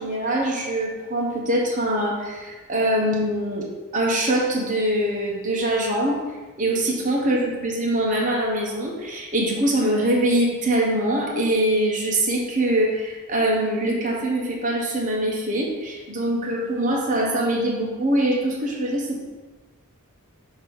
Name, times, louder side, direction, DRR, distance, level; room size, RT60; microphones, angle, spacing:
voice 1, 0.0-3.7 3.9-6.2 6.6-19.2, right 1 dB, 35° right, -2 dB, 1.0 m, -23 dB
6.2 x 2.9 x 5.4 m, 1.3 s
head